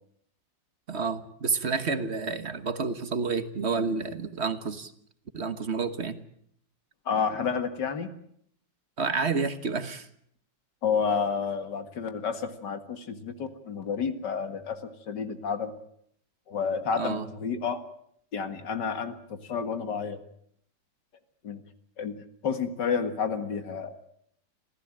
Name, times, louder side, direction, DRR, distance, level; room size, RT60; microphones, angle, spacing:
voice 1, 0.9-4.9 5.3-6.2 9.0-10.1 17.0-17.3, right 4 dB, 40° right, 11 dB, 1.4 m, -29 dB
voice 2, 7.1-8.1 10.8-15.7 16.5-17.8 18.3-19.2 19.4-20.2 21.4-21.6 22.0-22.2 22.4-24.0, left 6 dB, 60° left, 9 dB, 2.3 m, -30 dB
26.5 x 15.5 x 8.9 m, 0.68 s
omnidirectional pair, 2.1 m